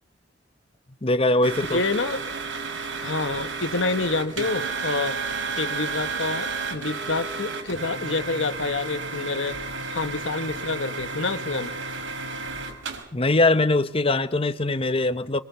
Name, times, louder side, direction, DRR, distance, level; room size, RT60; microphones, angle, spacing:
voice 1, 1.0-1.8 13.1-15.4, left 2 dB, 30° left, 1.1 m, -21 dB
sound 1, 1.4-13.0, right 4 dB, 90° right, 5.1 m, -32 dB
voice 2, 1.7-2.2 3.0-5.2 5.6-9.6 9.9-11.7, left 3 dB, 90° left, 1.5 m, -27 dB
26.5 x 22.0 x 7.0 m
head